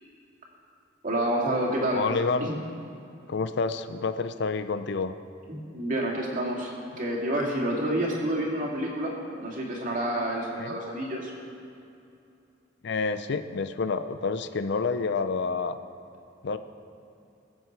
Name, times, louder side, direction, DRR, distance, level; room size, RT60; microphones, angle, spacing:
voice 1, 1.0-2.0 2.4-2.6 5.5-9.1 9.4-11.3, right 1 dB, 45° right, -2 dB, 2.4 m, -28 dB
voice 2, 1.9-2.5 3.3-5.1 10.6-10.8 12.8-15.8 16.4-16.6, left 4 dB, 60° left, 11 dB, 0.5 m, -28 dB
21.5 x 7.9 x 4.6 m, 2.7 s
head